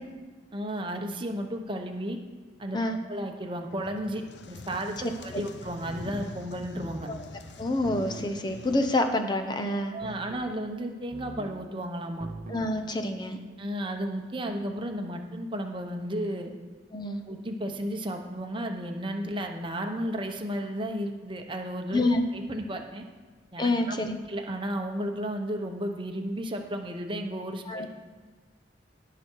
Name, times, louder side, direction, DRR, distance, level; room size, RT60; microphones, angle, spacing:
voice 1, 0.5-2.2 2.6-2.8 3.1-7.1 9.9-12.3 13.6-16.5 17.3-23.0 23.5-24.0 24.3-27.9, equal, 25° right, 3 dB, 0.9 m, -33 dB
sound 1, 3.7-9.0, left 3 dB, 65° left, 0.6 m, -45 dB
voice 2, 5.0-5.4 7.1-7.3 7.6-9.9 12.5-13.4 16.9-17.2 21.9-22.2 23.6-24.2 27.7-27.9, left 1 dB, 25° left, 5 dB, 0.8 m, -27 dB
sound 2, 5.7-6.2 6.7-7.2 7.8-8.4 10.0-10.6 11.1-11.6 12.2-12.7, right 2 dB, 45° right, 0.6 m, -42 dB
17.5 x 5.9 x 4.7 m, 1.4 s
head